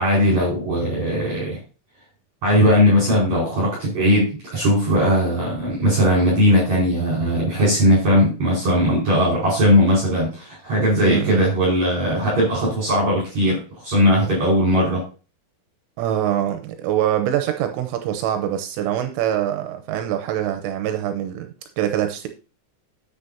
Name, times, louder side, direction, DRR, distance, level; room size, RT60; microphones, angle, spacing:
voice 1, 0.0-1.6 2.4-15.0, equal, 35° right, 5.7 m, -19 dB
voice 2, 11.0-11.4 16.0-22.3, right 11 dB, 80° right, 3.2 m, -24 dB
10.0 x 9.1 x 2.8 m
omnidirectional pair, 6.0 m